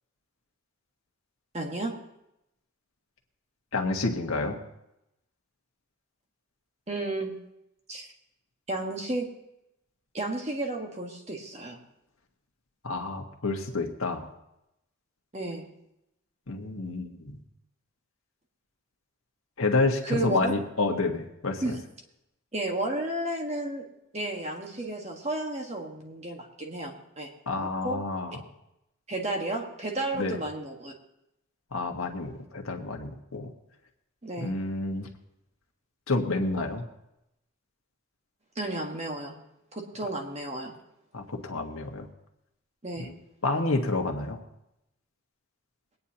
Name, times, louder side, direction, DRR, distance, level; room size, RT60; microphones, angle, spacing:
voice 1, 1.5-2.0 6.9-7.3 7.9-8.1 8.7-9.3 10.1-11.8 15.3-15.7 20.0-20.5 21.6-21.8 22.5-23.9 24.1-27.3 27.6-28.0 29.1-30.9 34.2-34.5 38.5-39.4 39.7-40.7 42.8-43.1, right 2 dB, 30° right, 1 dB, 1.5 m, -32 dB
voice 2, 3.7-4.6 12.8-14.3 16.5-17.4 19.6-21.6 27.5-28.4 30.1-30.4 31.7-33.5 34.4-35.1 36.1-36.8 41.1-42.1 43.0-43.1 43.4-44.4, left 3 dB, 80° left, 2 dB, 1.6 m, -29 dB
22.5 x 9.4 x 2.9 m, 0.86 s
head